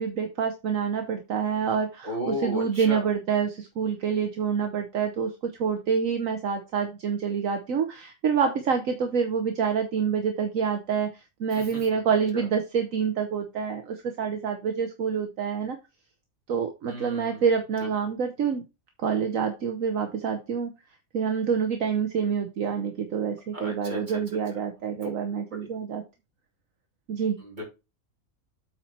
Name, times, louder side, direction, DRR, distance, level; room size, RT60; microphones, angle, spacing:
voice 1, 0.0-11.1 11.4-15.8 16.5-18.6 19.0-20.7 21.1-26.0 27.1-27.4, right 6 dB, 65° right, 6 dB, 1.4 m, -27 dB
voice 2, 2.0-3.0 11.5-11.8 12.3-12.4 16.9-17.4 17.8-17.9 23.5-24.2 24.9-25.1 27.4-27.6, left 1 dB, 30° right, -1 dB, 3.4 m, -34 dB
8.3 x 4.6 x 4.3 m, 0.26 s
omnidirectional pair, 1.5 m